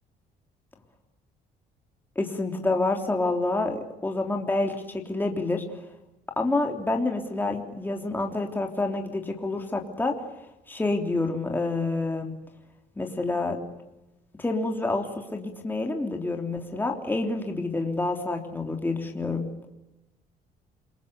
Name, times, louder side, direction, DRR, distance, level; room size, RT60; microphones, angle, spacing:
voice 1, 2.2-5.6 6.4-10.2 10.7-12.3 13.0-13.6 14.4-19.5, left 2 dB, 10° left, 3 dB, 3.4 m, -28 dB
28.5 x 22.0 x 8.3 m, 0.94 s
cardioid pair, 110°, 17 cm